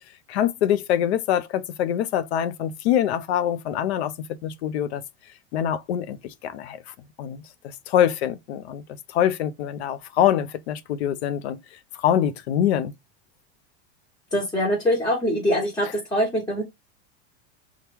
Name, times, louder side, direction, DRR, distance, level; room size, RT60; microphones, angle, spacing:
voice 1, 0.3-4.1 4.4-5.0 5.5-6.8 7.2-7.4 7.9-8.8 9.1-11.6 12.0-12.9, left 10 dB, 90° left, 0.5 m, -24 dB
voice 2, 14.3-16.6, equal, 10° left, 1.1 m, -23 dB
2.9 x 2.3 x 3.4 m
supercardioid pair, 130°, 32 cm